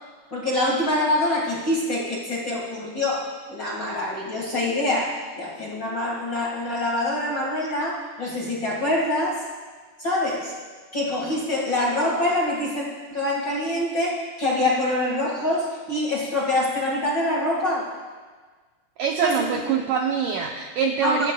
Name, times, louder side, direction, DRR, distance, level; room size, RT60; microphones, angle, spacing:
voice 1, 0.3-9.4 10.0-10.5 10.9-12.8 13.1-17.9 19.2-19.6 21.0-21.3, left 1 dB, 45° left, -4 dB, 1.6 m, -25 dB
voice 2, 19.0-21.3, right 7 dB, 90° right, 2 dB, 1.8 m, -24 dB
22.5 x 14.0 x 2.3 m, 1.4 s
omnidirectional pair, 4.6 m